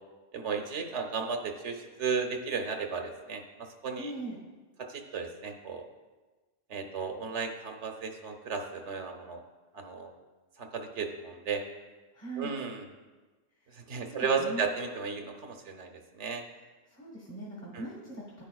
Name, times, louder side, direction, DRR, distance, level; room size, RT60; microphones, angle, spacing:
voice 1, 0.3-4.1 4.8-5.9 6.7-9.4 9.7-10.1 10.6-11.6 12.4-12.8 13.7-16.4 17.7-17.8, right 5 dB, 75° right, 4 dB, 1.1 m, -34 dB
voice 2, 4.0-4.4 12.1-12.5 13.6-14.7 16.9-18.4, right 1 dB, 25° left, -5 dB, 1.4 m, -41 dB
10.5 x 9.7 x 2.3 m, 1.3 s
omnidirectional pair, 1.2 m